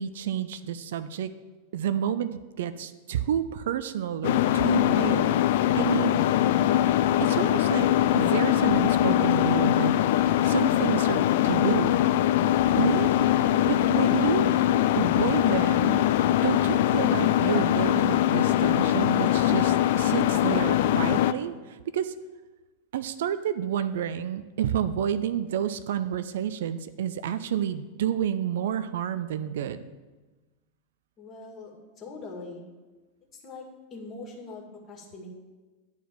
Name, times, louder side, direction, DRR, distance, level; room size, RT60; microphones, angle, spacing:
voice 1, 0.0-1.3 1.7-5.4 5.8-6.2 7.2-7.9 8.1-9.9 10.4-11.9 12.7-14.5 14.9-16.0 16.4-22.1 22.9-29.8, right 9 dB, 60° right, 13 dB, 0.4 m, -30 dB
sound 1, 4.2-21.3, left 12 dB, 55° left, 0.4 m, -22 dB
voice 2, 31.2-32.6 33.4-35.3, left 3 dB, 30° left, -1 dB, 2.3 m, -42 dB
10.5 x 4.5 x 7.5 m, 1.3 s
figure-of-eight pair, 90°, 0 cm